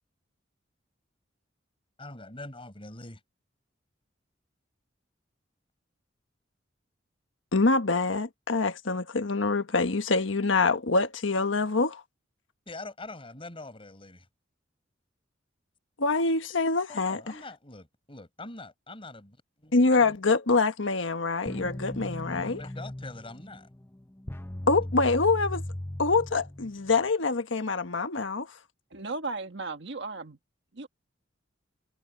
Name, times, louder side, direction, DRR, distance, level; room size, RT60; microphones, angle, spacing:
voice 1, 2.0-3.2 12.7-14.3 16.9-20.2 22.4-23.7, left 2 dB, 30° left, 5.0 m, -44 dB
voice 2, 7.5-12.0 16.0-17.2 19.7-22.6 24.7-25.6 26.0-28.6, left 3 dB, 85° left, 1.3 m, -25 dB
sound 1, 21.5-27.1, left 1 dB, 10° left, 0.7 m, -38 dB
voice 3, 28.9-30.4 30.7-30.9, right 3 dB, 65° right, 1.7 m, -35 dB
head